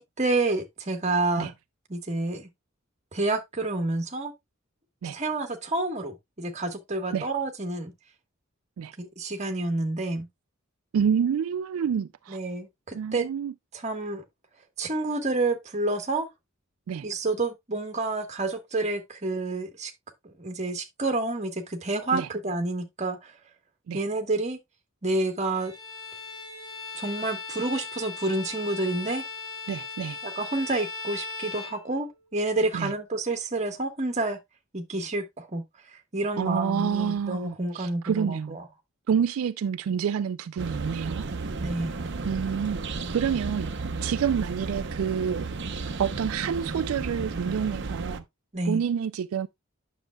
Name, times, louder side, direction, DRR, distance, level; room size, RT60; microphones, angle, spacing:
voice 1, 0.0-1.5 1.9-2.5 3.1-4.3 5.0-7.9 9.0-10.3 12.3-13.3 13.8-14.2 14.8-16.3 17.0-19.9 20.2-23.3 23.9-24.6 25.0-25.7 26.9-29.2 30.2-34.4 34.7-35.6 36.1-38.6 41.6-41.9 48.5-48.8, right 2 dB, 35° right, 1.4 m, -29 dB
voice 2, 10.9-12.4 12.9-13.5 16.9-17.1 22.1-22.3 23.9-24.0 29.7-30.2 32.7-32.9 36.4-38.6 39.1-41.3 42.2-43.7 44.0-45.5 45.8-48.2 48.7-49.5, right 7 dB, 80° right, 0.3 m, -28 dB
Bowed string instrument, 25.5-32.3, left 4 dB, 20° left, 3.7 m, -38 dB
sound 1, 40.6-48.2, right 3 dB, 55° right, 0.7 m, -33 dB
9.0 x 6.6 x 2.3 m
head